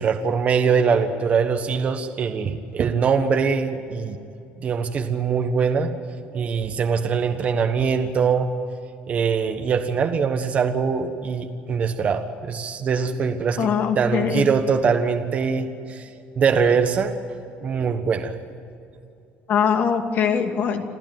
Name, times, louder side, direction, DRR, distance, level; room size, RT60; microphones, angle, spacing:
voice 1, 0.0-4.2 4.6-5.9 6.3-8.5 9.1-16.1 16.4-17.1 17.6-18.3, right 6 dB, 35° right, 5 dB, 1.3 m, -22 dB
voice 2, 13.6-14.5 19.5-20.8, left 7 dB, 45° left, 5 dB, 2.5 m, -22 dB
27.5 x 15.0 x 9.2 m, 2.6 s
cardioid pair, 150°, 4 cm